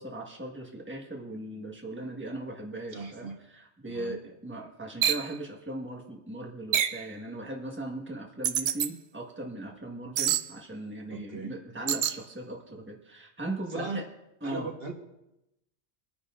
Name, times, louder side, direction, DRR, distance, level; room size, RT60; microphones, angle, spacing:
voice 1, 0.0-14.1 14.4-14.7, right 2 dB, 10° right, 0 dB, 1.4 m, -38 dB
voice 2, 2.9-3.4 3.9-4.2 11.1-11.5 13.7-14.0 14.4-14.9, right 3 dB, 60° right, 2 dB, 1.5 m, -37 dB
sound 1, 5.0-5.3 6.7-7.0 8.4-8.9 10.2-10.5 11.9-12.2, right 9 dB, 80° right, 0.9 m, -26 dB
24.5 x 10.0 x 2.5 m, 0.89 s
omnidirectional pair, 1.1 m